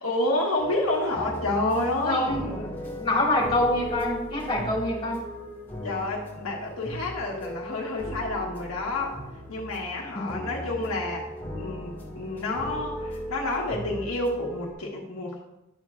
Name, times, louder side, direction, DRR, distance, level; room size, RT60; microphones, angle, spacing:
voice 1, 0.0-2.3 5.8-9.2 9.5-11.3 11.6-15.4, left 2 dB, 90° left, -3 dB, 1.5 m, -29 dB
sound 1, 0.6-14.7, left 1 dB, 10° left, 2.1 m, -38 dB
voice 2, 2.0-5.2 10.1-10.4, left 1 dB, 25° left, -4 dB, 2.7 m, -26 dB
11.5 x 7.7 x 2.5 m, 0.89 s
head